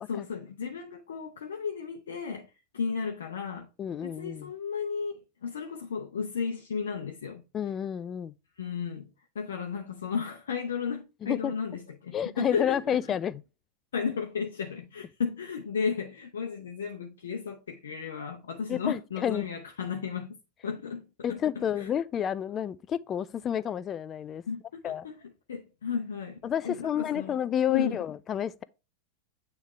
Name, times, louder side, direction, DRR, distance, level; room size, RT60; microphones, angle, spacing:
voice 1, 0.1-3.7 4.0-7.4 8.6-13.0 13.9-20.4 20.6-21.4 21.8-21.9 24.5-25.2 25.5-26.4 26.6-27.4 27.7-28.0, left 6 dB, 65° left, 0.8 m, -34 dB
voice 2, 3.8-4.5 7.5-8.3 11.2-11.5 12.1-13.4 18.7-19.5 21.2-24.4 24.8-25.0 26.4-28.6, left 9 dB, 25° left, 0.3 m, -30 dB
9.1 x 3.4 x 3.1 m
figure-of-eight pair, 90°, 0 cm